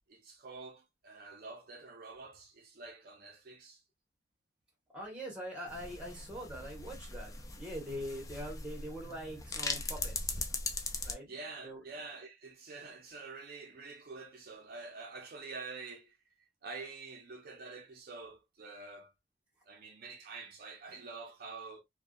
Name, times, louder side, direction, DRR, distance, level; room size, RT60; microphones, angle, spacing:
voice 1, 0.1-3.8 11.3-16.2 16.6-19.1 19.7-21.8, right 3 dB, 55° right, 0.5 m, -47 dB
voice 2, 4.9-10.4 11.0-11.3 11.6-11.8, equal, 5° right, 0.9 m, -43 dB
sound 1, 5.7-11.1, left 3 dB, 20° left, 0.3 m, -40 dB
2.5 x 2.1 x 2.2 m
head